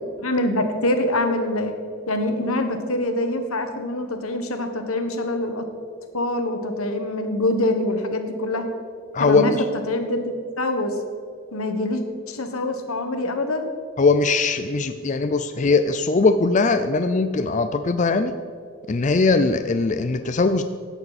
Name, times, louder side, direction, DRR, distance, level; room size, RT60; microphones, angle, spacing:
voice 1, 0.2-1.7 2.1-5.7 6.1-8.7 9.2-9.5 9.9-11.0 11.5-13.7, left 1 dB, 85° left, 7 dB, 1.4 m, -25 dB
voice 2, 9.1-9.6 14.0-18.3 18.9-20.6, left 3 dB, 35° left, 9 dB, 0.4 m, -20 dB
16.0 x 11.5 x 4.2 m, 2.3 s
head